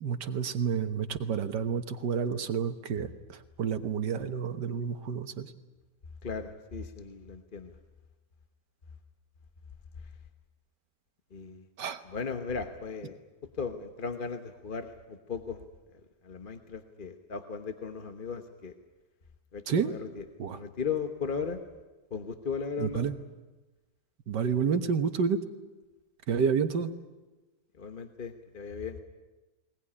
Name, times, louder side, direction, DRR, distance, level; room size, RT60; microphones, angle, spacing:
voice 1, 0.0-5.5 11.8-12.0 19.7-19.9 20.4-20.6 22.8-23.2 24.3-25.4 26.3-26.9, right 6 dB, 85° right, 9 dB, 1.9 m, -29 dB
voice 2, 6.2-7.7 11.3-11.6 12.0-13.2 13.6-15.6 15.9-18.7 19.5-21.6 22.1-23.1 24.5-24.7 27.8-29.0, left 5 dB, 35° left, 7 dB, 1.2 m, -37 dB
20.5 x 20.0 x 10.0 m, 1.1 s
omnidirectional pair, 1.8 m